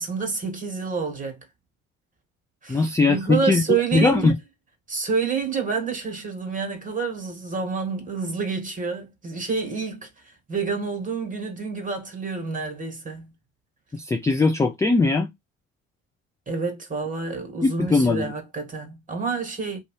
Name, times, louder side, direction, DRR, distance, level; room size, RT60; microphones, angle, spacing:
voice 1, 0.0-1.4 2.6-4.3 4.9-13.3 16.5-19.8, right 5 dB, 20° right, 1.5 m, -28 dB
voice 2, 2.7-4.3 13.9-15.3 17.6-18.3, left 3 dB, 10° left, 0.3 m, -20 dB
2.6 x 2.4 x 3.1 m
figure-of-eight pair, 50°, 40 cm